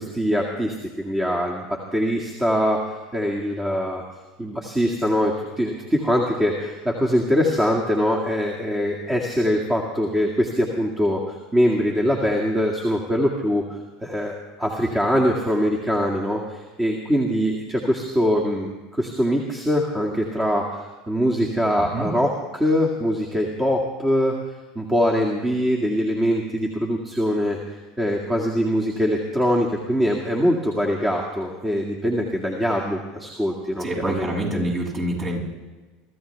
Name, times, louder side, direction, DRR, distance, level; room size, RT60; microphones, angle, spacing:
voice 1, 0.0-4.0 4.4-24.4 24.8-34.6, equal, 15° right, -1 dB, 2.1 m, -23 dB
voice 2, 33.8-35.5, right 1 dB, 35° right, -3 dB, 6.8 m, -26 dB
24.0 x 14.0 x 3.4 m, 1.3 s
hypercardioid pair, 85°, 0 cm